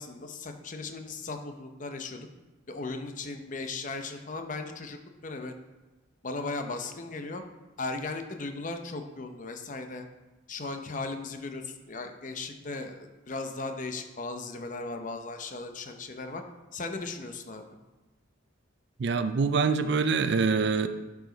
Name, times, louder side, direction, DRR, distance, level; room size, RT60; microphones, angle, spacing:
voice 1, 0.0-2.3 2.7-5.0 5.2-5.5 6.2-7.4 7.8-10.1 10.5-16.4 16.7-17.7, left 3 dB, 40° left, 6 dB, 0.7 m, -37 dB
voice 2, 19.0-20.9, right 5 dB, 55° right, 11 dB, 0.4 m, -25 dB
11.0 x 4.8 x 3.9 m, 1.1 s
head